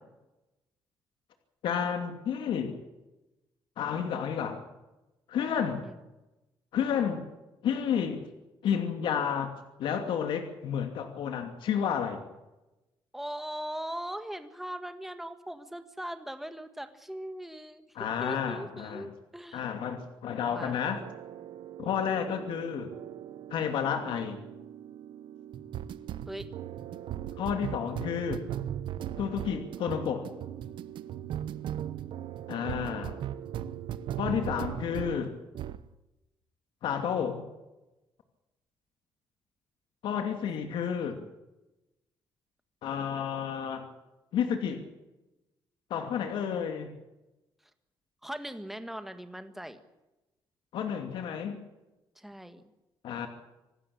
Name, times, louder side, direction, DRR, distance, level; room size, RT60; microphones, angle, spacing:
voice 1, 1.6-2.8 3.8-4.6 5.3-5.8 6.7-7.2 7.6-8.2 8.6-9.5 9.8-12.2 17.9-19.1 19.5-21.0 21.8-22.9 23.5-24.4 27.4-28.4 29.2-30.3 32.5-33.2 34.2-35.3 36.8-37.4 40.0-41.2 42.8-43.8 44.3-44.8 45.9-46.9 50.7-51.6 53.0-53.3, left 8 dB, 70° left, 5 dB, 2.7 m, -31 dB
voice 2, 13.1-17.8 18.2-19.6 20.5-20.8 21.8-22.0 26.3-26.5 41.0-41.3 48.2-49.8 52.2-52.6, right 1 dB, 5° right, 9 dB, 1.7 m, -40 dB
sound 1, 20.9-35.2 35.5-35.9, right 10 dB, 70° right, 1.0 m, -38 dB
26.0 x 13.0 x 8.7 m, 1.0 s
cardioid pair, 165°, 9 cm